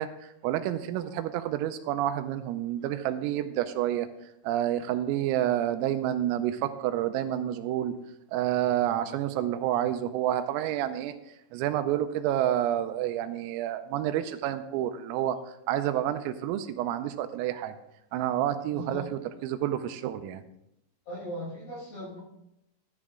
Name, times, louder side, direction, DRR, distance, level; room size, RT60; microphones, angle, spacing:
voice 1, 0.0-4.1 4.5-8.0 8.3-11.1 11.5-17.8 18.1-20.4, right 12 dB, 85° right, 9 dB, 3.3 m, -29 dB
voice 2, 18.7-19.1 21.1-22.2, left 1 dB, 35° left, -5 dB, 6.0 m, -38 dB
13.5 x 10.5 x 3.7 m, 0.84 s
omnidirectional pair, 6.0 m